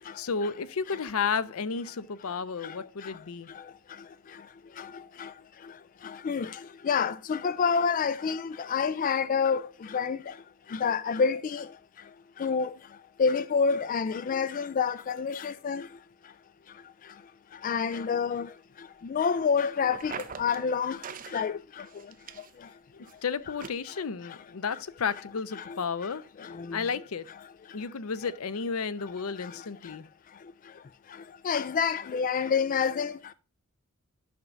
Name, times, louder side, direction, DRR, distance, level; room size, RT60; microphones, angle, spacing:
voice 1, 0.2-3.5 22.9-26.2 26.7-27.3 27.7-30.0, left 5 dB, 75° left, 0.6 m, -32 dB
voice 2, 6.9-8.4 8.7-9.6 9.9-10.2 10.8-11.6 12.4-12.7 13.2-15.8 17.6-18.5 19.1-20.1 20.4-21.0 21.3-21.5 31.5-33.1, left 6 dB, 40° left, 0.3 m, -27 dB
sound 1, 19.9-20.7 21.0-21.4 21.8-22.7 23.1-23.2 23.6-23.7, right 6 dB, 40° right, 0.7 m, -41 dB
11.0 x 6.0 x 2.6 m
head